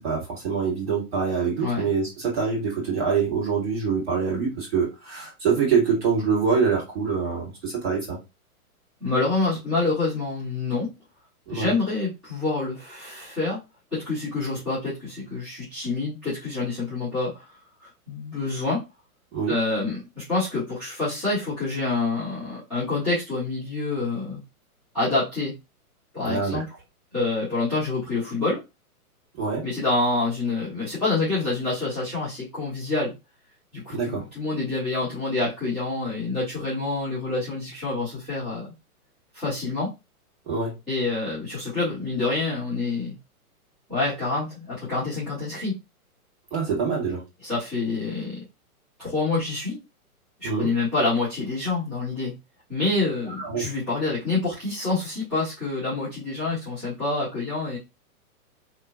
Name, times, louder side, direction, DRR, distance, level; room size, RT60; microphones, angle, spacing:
voice 1, 0.0-8.2 11.5-11.7 19.3-19.6 26.3-26.6 29.4-29.7 33.9-34.2 40.5-40.8 46.5-47.2 50.4-50.7 53.3-53.7, right 5 dB, 45° right, -2 dB, 1.7 m, -25 dB
voice 2, 9.0-10.9 11.5-13.6 13.9-17.5 17.8-18.8 19.5-24.4 24.9-25.5 26.1-26.6 27.1-28.6 29.6-33.1 33.7-38.7 39.3-39.9 40.9-43.1 43.9-45.7 47.4-48.4 49.0-49.8 50.4-52.3 52.7-57.8, left 3 dB, 5° right, -16 dB, 0.6 m, -27 dB
2.9 x 2.4 x 2.3 m, 0.24 s
hypercardioid pair, 165°, 45 cm